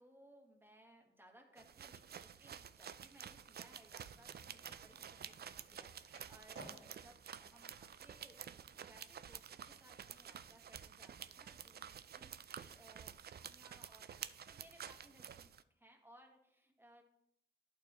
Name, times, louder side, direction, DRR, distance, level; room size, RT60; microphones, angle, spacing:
voice 1, 0.0-8.5 8.8-17.0, right 1 dB, 10° right, 1 dB, 1.8 m, -64 dB
sound 1, 1.6-15.6, right 8 dB, 50° right, 0.4 m, -51 dB
Skateboard, 4.0-9.3, right 3 dB, 75° right, 2.2 m, -61 dB
11.0 x 4.5 x 3.0 m, 0.77 s
cardioid pair, 70°, 21 cm